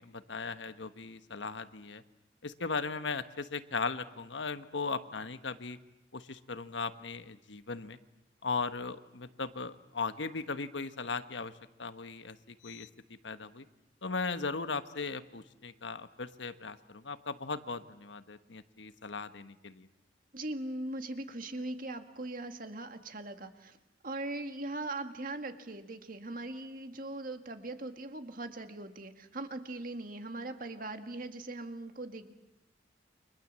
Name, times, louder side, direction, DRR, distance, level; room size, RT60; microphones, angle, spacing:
voice 1, 0.0-2.0 2.4-5.8 6.1-8.0 8.4-11.5 11.8-12.9 13.2-13.7 14.0-19.9, left 4 dB, 80° left, 11 dB, 1.3 m, -38 dB
voice 2, 20.3-23.8 24.0-32.3, right 2 dB, 50° right, 7 dB, 2.1 m, -40 dB
29.5 x 25.5 x 7.5 m, 0.93 s
head